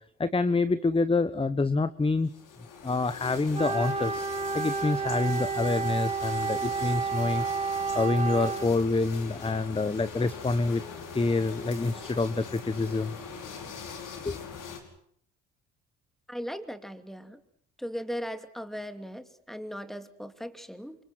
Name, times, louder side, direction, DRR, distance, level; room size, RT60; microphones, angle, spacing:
voice 1, 0.2-2.3 2.8-4.3 4.5-10.8 11.1-13.2 14.2-14.4, left 3 dB, 15° left, 14 dB, 1.1 m, -27 dB
sound 1, 2.2-14.8, left 6 dB, 65° left, 5.3 m, -42 dB
Wind instrument woodwind instrument, 3.5-8.7, right 5 dB, 20° right, 4.1 m, -31 dB
voice 2, 16.3-17.4 17.8-21.0, equal, ahead, 9 dB, 2.8 m, -38 dB
28.0 x 24.5 x 6.3 m, 0.65 s
hypercardioid pair, 60°, 34 cm